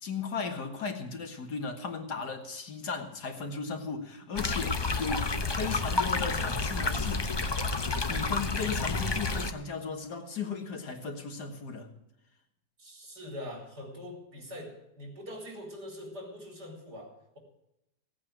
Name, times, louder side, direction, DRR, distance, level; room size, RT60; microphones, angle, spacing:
voice 1, 0.0-7.3 8.1-11.9, left 5 dB, 80° left, 4 dB, 2.4 m, -36 dB
sound 1, 4.4-9.5, left 3 dB, 40° left, 0.3 m, -30 dB
voice 2, 12.8-17.4, left 1 dB, 80° right, 1 dB, 4.7 m, -43 dB
16.5 x 8.8 x 7.5 m, 0.84 s
omnidirectional pair, 1.7 m